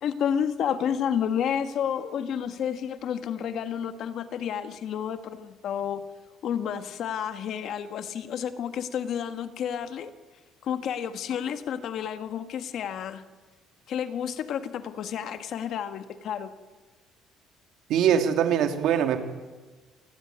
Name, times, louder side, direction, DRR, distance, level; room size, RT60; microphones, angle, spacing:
voice 1, 0.0-6.0 6.4-10.1 10.6-13.2 13.9-16.5, left 8 dB, 50° left, 9 dB, 1.5 m, -30 dB
voice 2, 17.9-19.2, right 9 dB, 60° right, 6 dB, 2.7 m, -22 dB
28.0 x 19.5 x 9.4 m, 1.3 s
cardioid pair, 170°, 0 cm